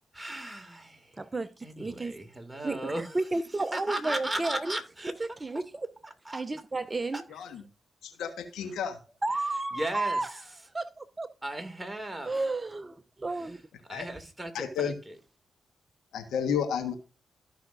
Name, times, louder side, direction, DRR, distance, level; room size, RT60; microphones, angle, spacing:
voice 1, 0.1-1.2 1.6-3.3 3.7-5.1 6.0-6.4 7.1-7.2 9.7-10.5 11.4-12.3 13.3-13.6 13.9-15.2, right 1 dB, 15° right, 2.3 m, -37 dB
voice 2, 1.2-2.2 2.6-4.8 5.2-5.9 6.3-7.2 9.2-10.3 10.7-11.3 12.3-13.6, right 2 dB, 30° right, 0.6 m, -32 dB
voice 3, 8.0-9.0 13.9-14.0 14.5-14.9 16.1-16.9, left 7 dB, 80° left, 1.3 m, -31 dB
14.5 x 5.7 x 2.6 m
hypercardioid pair, 40°, 0 cm